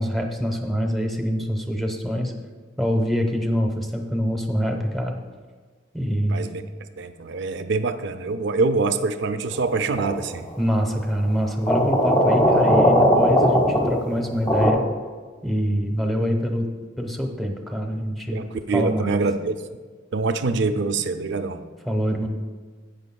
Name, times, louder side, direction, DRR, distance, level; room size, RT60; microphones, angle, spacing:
voice 1, 0.0-2.3 2.8-5.2 5.9-6.5 10.6-14.9 15.4-16.7 17.0-18.4 18.7-19.2 21.9-22.3, equal, ahead, 2 dB, 1.0 m, -25 dB
voice 2, 6.3-6.7 7.0-10.5 18.3-19.6 20.1-21.7, right 3 dB, 65° right, 9 dB, 0.5 m, -25 dB
sound 1, 10.0-10.4 11.7-14.7, equal, 20° left, 1.2 m, -19 dB
13.0 x 8.9 x 2.3 m, 1.5 s
head